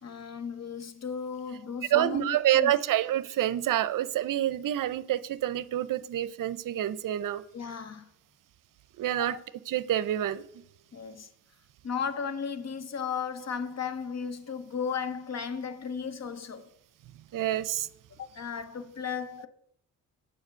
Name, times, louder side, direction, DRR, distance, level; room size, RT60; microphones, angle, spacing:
voice 1, 0.0-2.8 7.5-8.1 9.2-9.4 10.9-11.3 11.8-16.7 18.2-19.5, left 6 dB, 45° left, 0.9 m, -35 dB
voice 2, 1.9-7.4 9.0-9.4 9.7-10.4 17.3-17.9, right 12 dB, 60° right, 0.6 m, -27 dB
7.2 x 5.1 x 6.4 m
supercardioid pair, 45°, 37 cm